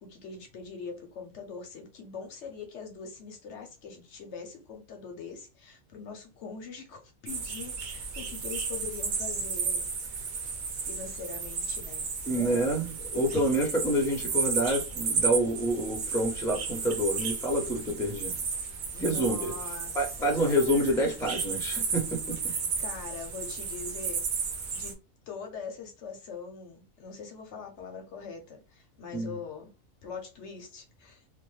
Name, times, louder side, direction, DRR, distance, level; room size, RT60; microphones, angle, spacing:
voice 1, 0.0-10.5 10.8-12.0 12.3-12.9 13.3-13.4 18.9-21.2 22.4-25.0 25.3-29.7 30.0-31.2, left 5 dB, 65° left, 0.8 m, -43 dB
sound 1, 7.3-24.9, right 5 dB, 85° right, 1.1 m, -33 dB
voice 2, 12.3-18.4 19.0-19.5 19.9-22.5 29.1-29.3, right 1 dB, 5° left, 0.3 m, -28 dB
2.9 x 2.1 x 3.1 m
omnidirectional pair, 1.5 m